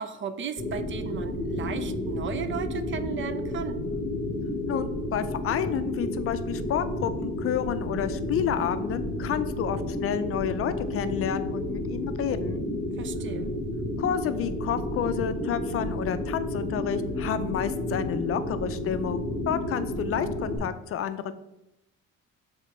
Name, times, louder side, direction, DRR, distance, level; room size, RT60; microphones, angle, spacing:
voice 1, 0.0-3.8 13.0-13.5, right 7 dB, 40° right, 11 dB, 0.5 m, -35 dB
sound 1, 0.6-20.6, left 1 dB, 5° right, 2.1 m, -31 dB
voice 2, 4.7-12.6 14.0-21.3, left 9 dB, 50° left, 11 dB, 0.4 m, -30 dB
7.1 x 3.7 x 4.2 m, 0.90 s
cardioid pair, 135°, 30 cm